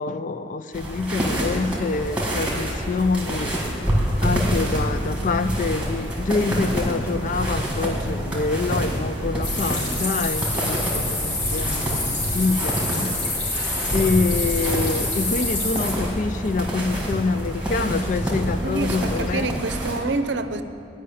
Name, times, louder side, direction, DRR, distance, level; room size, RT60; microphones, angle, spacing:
voice 1, 0.0-3.6 4.2-13.2 13.9-19.5, left 3 dB, 45° left, 12 dB, 0.4 m, -26 dB
sound 1, 0.7-20.0, equal, 5° right, 2.0 m, -27 dB
sound 2, 9.4-15.9, left 2 dB, 70° left, 3.2 m, -27 dB
voice 2, 18.6-20.6, right 3 dB, 70° right, 9 dB, 0.6 m, -27 dB
11.5 x 5.6 x 8.6 m, 2.8 s
head